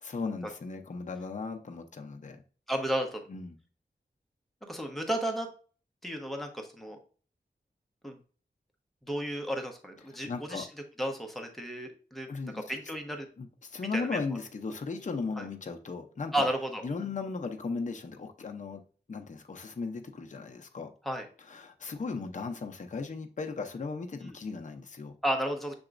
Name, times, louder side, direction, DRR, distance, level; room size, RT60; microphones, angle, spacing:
voice 1, 0.0-2.4 3.3-3.6 10.1-10.7 12.3-12.6 13.4-16.5 16.8-18.8 19.1-20.9 21.4-25.1, left 4 dB, 45° left, 0.6 m, -37 dB
voice 2, 2.7-3.3 4.6-5.5 6.0-7.0 8.0-8.2 9.1-10.7 11.0-12.3 12.5-13.3 13.9-14.2 15.4-15.5 16.3-16.8 21.0-21.3 24.2-24.3 25.2-25.8, right 1 dB, ahead, 0.9 m, -33 dB
6.8 x 2.9 x 2.5 m
wide cardioid pair, 90°, 18 cm